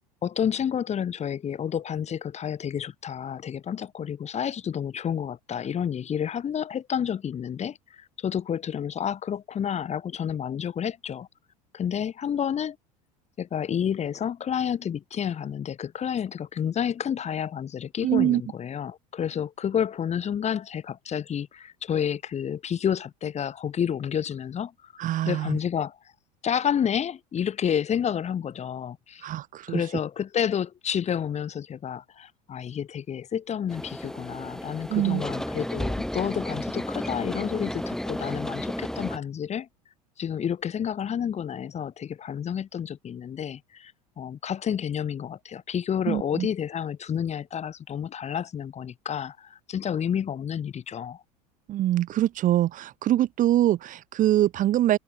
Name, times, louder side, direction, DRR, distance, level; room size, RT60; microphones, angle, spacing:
voice 1, 0.2-11.3 11.7-12.8 13.4-24.9 25.2-26.0 26.4-29.3 29.7-39.7 40.2-51.2, left 8 dB, 30° left, 6.5 m, -30 dB
voice 2, 18.0-18.4 25.0-25.6 29.2-29.9 34.9-35.2 46.0-46.5 51.7-55.0, right 13 dB, 40° right, 1.5 m, -24 dB
sound 1, 33.7-39.2, left 1 dB, ahead, 4.2 m, -32 dB
open air
figure-of-eight pair, 70°, 21 cm